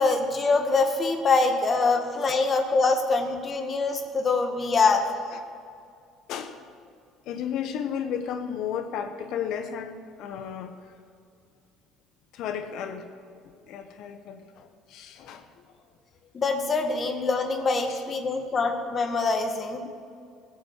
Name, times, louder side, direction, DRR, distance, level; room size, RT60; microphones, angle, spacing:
voice 1, 0.0-5.0 16.3-19.8, left 3 dB, 35° left, 5 dB, 1.6 m, -24 dB
voice 2, 7.3-10.7 12.3-13.1 13.7-15.5 17.9-18.0 19.8-19.9, left 8 dB, 70° left, 8 dB, 1.0 m, -33 dB
15.0 x 7.5 x 8.2 m, 2.3 s
supercardioid pair, 90°, 0 cm